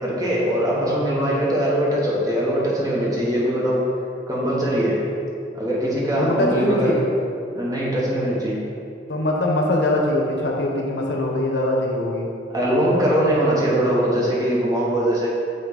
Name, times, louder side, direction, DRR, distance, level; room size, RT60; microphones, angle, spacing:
voice 1, 0.0-3.8 4.3-4.9 5.5-6.9 7.5-8.6 12.5-15.3, right 1 dB, 20° right, -6 dB, 1.3 m, -21 dB
voice 2, 0.7-1.4 3.2-3.3 6.1-7.1 9.1-12.3, left 1 dB, 80° left, -1 dB, 1.0 m, -23 dB
8.8 x 3.5 x 4.0 m, 2.5 s
head